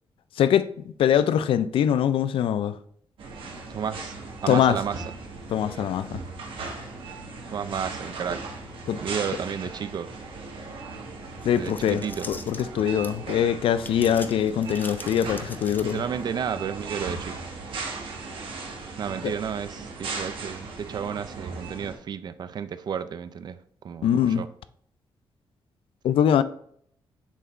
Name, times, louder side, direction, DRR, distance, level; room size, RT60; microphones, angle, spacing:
voice 1, 0.4-0.7 1.0-2.8 4.5-4.8 5.5-6.2 8.9-9.0 11.4-16.0 19.2-19.3 24.0-24.4 26.0-26.4, left 9 dB, 80° left, 0.4 m, -23 dB
sound 1, 3.2-21.9, right 3 dB, 75° right, 1.3 m, -38 dB
voice 2, 3.7-4.2 4.4-5.0 7.5-8.4 9.0-10.1 11.6-12.3 15.9-17.4 19.0-23.6 23.8-24.5, right 7 dB, 50° right, 0.4 m, -32 dB
sound 2, 11.4-13.3 13.8-16.2, left 3 dB, 20° left, 0.6 m, -42 dB
7.3 x 3.4 x 4.2 m
cardioid pair, 110°, 9 cm